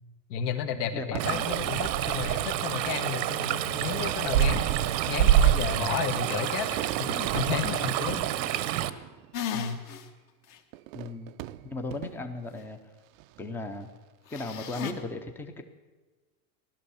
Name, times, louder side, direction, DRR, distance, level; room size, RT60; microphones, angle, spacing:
voice 1, 0.3-4.7 5.1-8.2 9.5-9.8, left 7 dB, 65° left, 6 dB, 1.8 m, -32 dB
voice 2, 0.9-1.5 10.9-11.3 11.6-12.8 13.4-13.9 14.3-15.6, left 2 dB, 5° left, 7 dB, 0.6 m, -36 dB
Fireworks, 1.1-2.8 3.6-3.7 4.4-9.7 10.7-12.5 13.1-13.5, right 15 dB, 55° right, 0.5 m, -41 dB
Stream, 1.2-8.9, right 11 dB, 90° right, 1.1 m, -27 dB
sound 1, 9.3-10.0 10.5-10.6 14.3-14.9, left 8 dB, 40° left, 1.4 m, -35 dB
16.0 x 12.0 x 7.0 m, 1.3 s
supercardioid pair, 160°, 50 cm